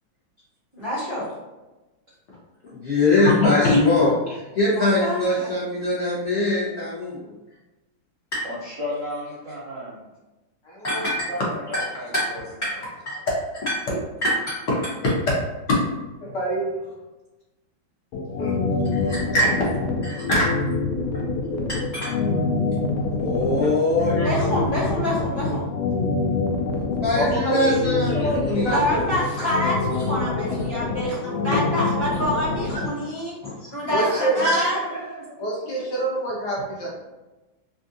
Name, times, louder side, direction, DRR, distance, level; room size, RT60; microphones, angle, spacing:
voice 1, 0.7-1.2 4.8-5.5 24.2-25.6 28.7-33.3 33.7-34.8, equal, 30° left, -9 dB, 1.4 m, -26 dB
voice 2, 2.6-4.1 4.6-7.3 8.3-8.4 10.8-11.2 11.7-11.8 12.1-12.2 12.6-12.7 13.1-13.2 13.7-13.8 14.2-14.6 19.1-19.2 20.0-20.2 21.7-22.1 23.0-24.2 26.9-28.8 33.4-33.7 34.1-34.6, left 2 dB, 45° left, -10 dB, 0.8 m, -23 dB
voice 3, 3.3-3.8 10.7-11.0 16.2-16.7 18.4-18.5 19.3-19.5 20.3-20.4 21.5-21.7 24.2-24.3 27.1-27.8 28.1-29.2 33.9-34.4 35.4-36.9, equal, 65° left, -5 dB, 1.4 m, -24 dB
voice 4, 8.4-10.0 11.3-12.4 13.9-14.0 19.0-19.1 30.3-30.4 34.0-35.4 35.8-35.9, equal, 60° right, -7 dB, 0.8 m, -34 dB
sound 1, 18.1-32.9, left 4 dB, 85° left, 1.4 m, -25 dB
3.5 x 2.5 x 2.6 m, 1.1 s
omnidirectional pair, 2.2 m